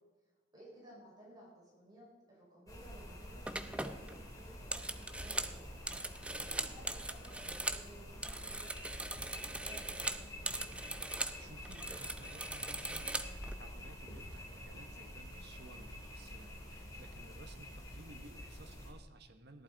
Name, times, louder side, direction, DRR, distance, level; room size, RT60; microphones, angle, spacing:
voice 1, 0.5-5.6 6.0-10.7, right 1 dB, 20° right, -6 dB, 5.4 m, -57 dB
sound 1, 2.7-18.9, equal, 20° left, 2.9 m, -48 dB
sound 2, 2.8-3.0 3.5-7.9 8.1-11.4 11.6-13.5, right 2 dB, 5° right, 0.5 m, -40 dB
voice 2, 11.0-19.6, right 2 dB, 55° right, 8 dB, 1.3 m, -57 dB
17.5 x 11.5 x 4.0 m, 1.3 s
head